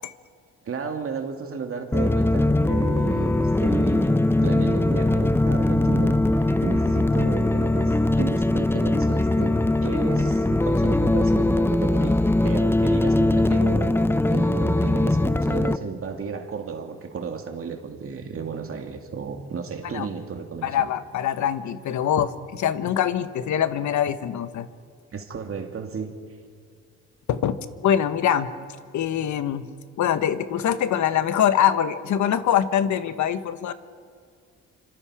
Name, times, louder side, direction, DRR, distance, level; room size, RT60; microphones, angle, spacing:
voice 1, 0.6-14.0 14.3-20.9 25.1-26.1, right 5 dB, 45° right, 2.3 m, -33 dB
sound 1, 1.9-15.8, left 2 dB, 10° left, 0.6 m, -21 dB
voice 2, 20.6-24.7 27.3-27.6 27.8-28.5 28.9-29.6 30.0-33.7, left 9 dB, 70° left, 1.3 m, -23 dB
28.5 x 26.0 x 4.9 m
cardioid pair, 90°, 30 cm